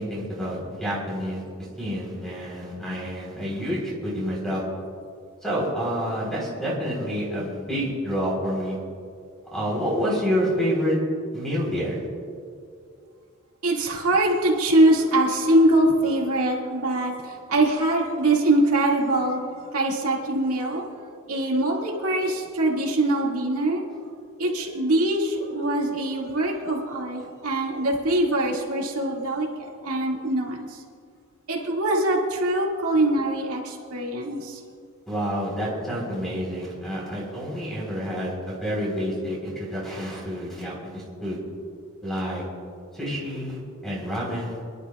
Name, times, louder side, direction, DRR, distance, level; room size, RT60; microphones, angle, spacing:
voice 1, 0.0-1.4 1.8-4.6 5.4-8.8 9.5-11.0 11.3-12.0 35.1-41.4 42.0-42.4 42.9-44.6, equal, ahead, -4 dB, 3.8 m, -28 dB
voice 2, 13.6-20.9 21.3-23.8 24.4-30.8 31.5-34.6, right 1 dB, 80° right, -2 dB, 2.1 m, -23 dB
27.0 x 11.5 x 2.4 m, 2.3 s
head